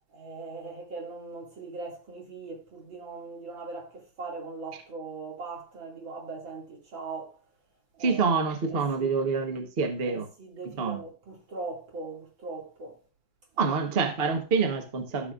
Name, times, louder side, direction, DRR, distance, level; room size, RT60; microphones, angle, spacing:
voice 1, 0.1-7.4 7.9-9.1 10.0-13.0 13.5-14.0, right 3 dB, 80° right, 3.2 m, -40 dB
voice 2, 8.0-10.3 10.6-11.0 13.6-15.3, right 5 dB, 35° right, 1.2 m, -27 dB
13.5 x 6.9 x 2.5 m
omnidirectional pair, 2.1 m